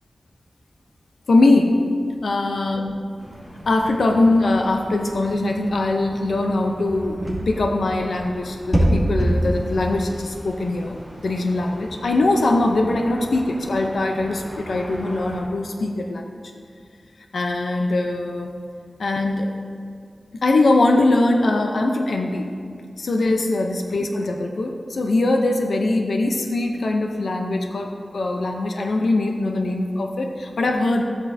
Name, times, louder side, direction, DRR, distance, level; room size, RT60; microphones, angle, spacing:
voice 1, 1.3-1.8 2.2-3.0 3.7-11.0 11.2-16.4 17.3-18.5 19.0-19.5 20.3-22.5 23.0-31.0, left 2 dB, 80° left, 3 dB, 0.6 m, -21 dB
sound 1, 3.2-15.4, right 1 dB, 15° left, 2.4 m, -29 dB
14.5 x 8.4 x 2.7 m, 2.2 s
wide cardioid pair, 85°, 0 cm